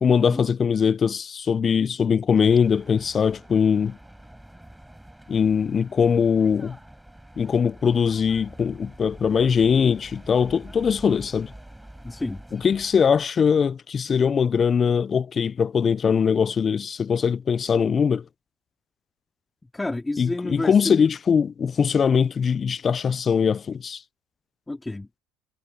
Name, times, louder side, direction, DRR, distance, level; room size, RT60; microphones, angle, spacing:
voice 1, 0.0-4.0 5.3-6.8 7.4-11.5 12.5-18.2 20.2-24.0, left 6 dB, 35° left, 0.4 m, -21 dB
sound 1, 2.3-13.2, right 1 dB, 5° right, 7.0 m, -46 dB
voice 2, 12.0-12.4 19.7-20.9 24.7-25.1, left 2 dB, 10° left, 2.9 m, -30 dB
supercardioid pair, 90°, 0 cm